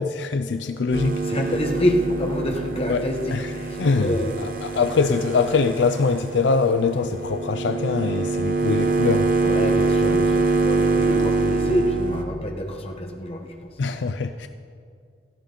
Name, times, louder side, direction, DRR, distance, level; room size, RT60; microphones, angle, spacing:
voice 1, 0.0-1.2 2.9-3.1 3.3-3.5 3.8-9.3 13.8-14.5, left 4 dB, 85° left, 0.5 m, -23 dB
sound 1, 0.9-12.2, right 3 dB, 50° right, 1.1 m, -24 dB
voice 2, 1.2-4.4 9.4-13.5, equal, 30° left, 1.1 m, -27 dB
16.0 x 13.0 x 3.8 m
head